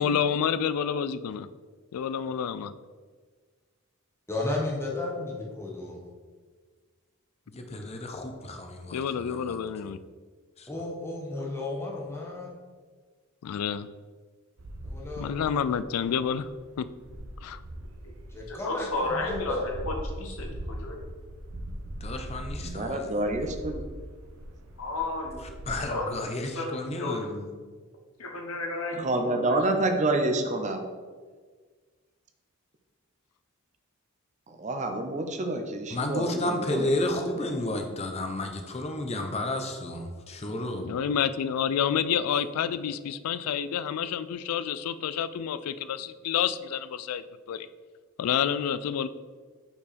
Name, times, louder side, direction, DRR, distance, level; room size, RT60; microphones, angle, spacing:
voice 1, 0.0-1.5 1.9-2.7 8.9-10.0 13.4-13.9 15.2-16.5 16.8-16.9 17.4-17.6 40.8-47.7 48.2-49.1, left 8 dB, 90° left, 14 dB, 0.3 m, -29 dB
voice 2, 4.3-6.0 10.7-12.5 14.8-15.3 18.3-19.6, left 2 dB, 10° left, -2 dB, 1.1 m, -33 dB
voice 3, 7.5-9.6 10.6-10.7 22.0-23.1 25.7-27.5 35.9-40.9, left 1 dB, 30° left, 5 dB, 0.7 m, -32 dB
sound 1, 14.6-25.8, right 1 dB, 80° right, 0.7 m, -41 dB
voice 4, 18.5-21.0 24.8-25.4 25.7-26.0 26.4-27.2 28.2-29.6, left 2 dB, 70° left, 1 dB, 1.1 m, -33 dB
voice 5, 22.6-23.8 29.0-30.8 34.5-37.5, right 2 dB, 35° right, 5 dB, 0.6 m, -28 dB
5.6 x 4.5 x 4.2 m, 1.5 s
head